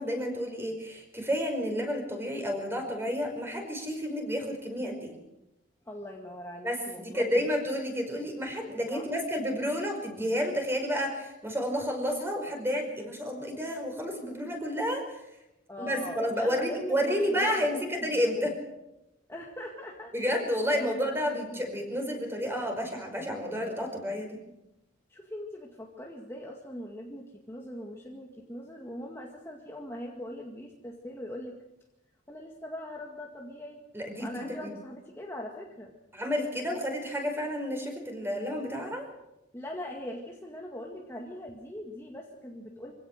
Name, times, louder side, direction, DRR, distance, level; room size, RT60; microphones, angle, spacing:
voice 1, 0.0-5.1 6.6-15.0 15.8-18.5 20.1-24.4 33.9-34.7 36.1-39.0, equal, 15° right, 3 dB, 5.1 m, -30 dB
voice 2, 5.9-7.2 8.9-9.1 15.7-18.5 19.3-20.4 20.7-21.1 25.1-31.6 32.3-33.8 34.2-35.9 39.5-42.9, left 1 dB, 15° left, -1 dB, 2.0 m, -41 dB
25.5 x 17.0 x 6.6 m, 0.91 s
head